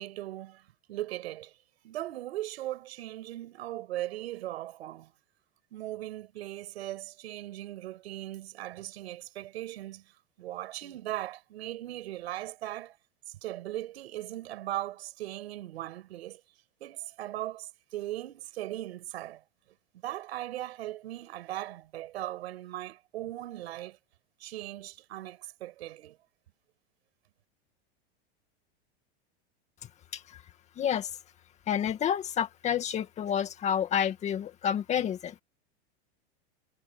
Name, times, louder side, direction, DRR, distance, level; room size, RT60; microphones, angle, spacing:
voice 1, 0.0-1.5 1.8-5.1 5.7-13.0 13.3-16.4 16.8-19.4 20.0-24.0 24.4-26.2, right 14 dB, 80° right, 6.6 m, -39 dB
voice 2, 30.8-31.1 31.7-35.3, left 9 dB, 20° left, 2.1 m, -29 dB
supercardioid pair, 165°, 32 cm